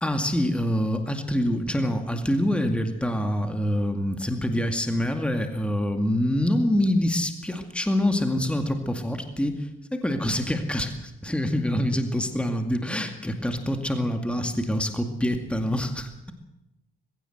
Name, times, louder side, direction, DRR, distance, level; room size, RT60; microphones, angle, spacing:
voice 1, 0.0-16.3, left 1 dB, 5° left, 5 dB, 2.2 m, -26 dB
21.0 x 16.0 x 8.0 m, 0.92 s
cardioid pair, 90°, 20 cm